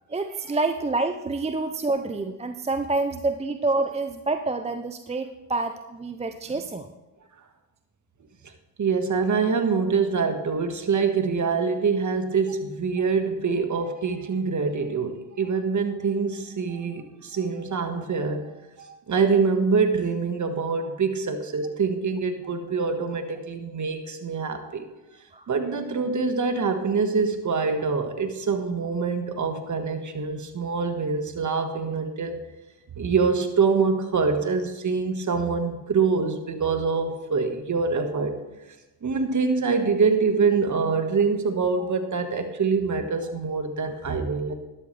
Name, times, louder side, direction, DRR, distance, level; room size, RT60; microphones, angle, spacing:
voice 1, 0.1-6.9 25.3-25.4 41.8-41.9, right 3 dB, 15° right, 8 dB, 0.6 m, -27 dB
voice 2, 8.8-18.5 18.8-24.8 25.5-32.4 33.0-38.3 39.0-44.5, right 5 dB, 35° right, 7 dB, 1.7 m, -25 dB
12.5 x 12.0 x 3.4 m, 1.0 s
supercardioid pair, 70°, 50 cm